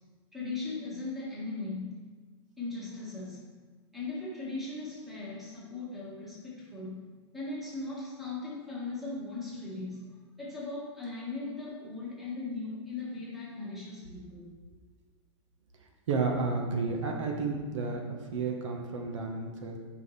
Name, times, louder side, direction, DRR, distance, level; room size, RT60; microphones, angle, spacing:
voice 1, 0.3-2.0 2.6-3.5 3.9-7.0 7.3-10.1 10.4-14.5, left 3 dB, ahead, -8 dB, 1.6 m, -38 dB
voice 2, 16.1-18.0 18.3-19.8, right 4 dB, 75° right, 2 dB, 1.2 m, -31 dB
9.0 x 5.2 x 3.3 m, 1.4 s
supercardioid pair, 175°, 16 cm